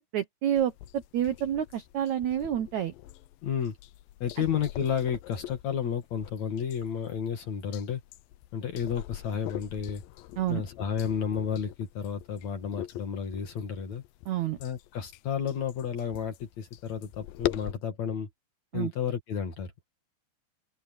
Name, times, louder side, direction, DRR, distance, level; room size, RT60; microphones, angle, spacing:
voice 1, 0.1-2.9 10.4-10.6 14.2-14.6 18.7-18.9, right 10 dB, 75° right, 1.7 m, -29 dB
sound 1, 0.6-17.7, left 15 dB, 80° left, 2.1 m, -42 dB
voice 2, 3.4-3.8 4.2-8.0 8.5-10.0 10.5-14.0 14.6-18.3 18.7-19.7, left 7 dB, 50° left, 2.7 m, -32 dB
open air
omnidirectional pair, 4.8 m